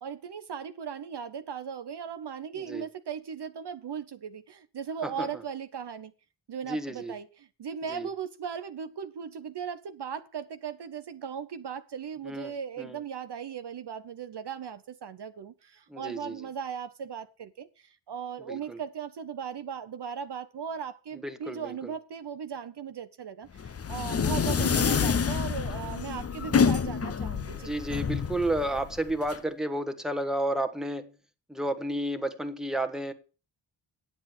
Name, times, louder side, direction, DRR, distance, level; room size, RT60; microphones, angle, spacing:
voice 1, 0.0-6.1 6.5-27.7, right 7 dB, 55° right, 0.7 m, -38 dB
voice 2, 6.7-7.1 7.9-8.1 12.2-13.0 15.9-16.4 18.4-18.8 21.2-21.9 24.4-24.7 27.5-31.1 31.5-33.1, right 1 dB, ahead, 1.2 m, -32 dB
sound 1, 23.6-29.4, left 6 dB, 30° left, 0.6 m, -28 dB
9.5 x 7.5 x 6.0 m
cardioid pair, 75°, 47 cm